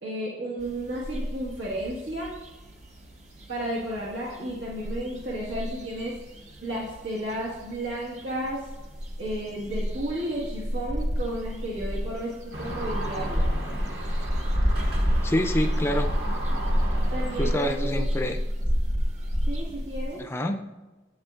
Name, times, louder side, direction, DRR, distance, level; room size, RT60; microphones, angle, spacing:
voice 1, 0.0-2.3 3.5-6.2 6.6-8.7 9.2-13.5 17.1-18.3 19.5-20.2, right 1 dB, 75° right, -6 dB, 1.5 m, -33 dB
sound 1, 0.6-20.2, equal, 40° right, 1.0 m, -30 dB
sound 2, 12.5-17.6, right 1 dB, 60° right, 1.8 m, -36 dB
voice 2, 15.2-16.1 17.4-18.4 20.2-20.6, left 1 dB, 15° left, 5 dB, 0.5 m, -27 dB
10.0 x 8.3 x 2.4 m, 1.2 s
head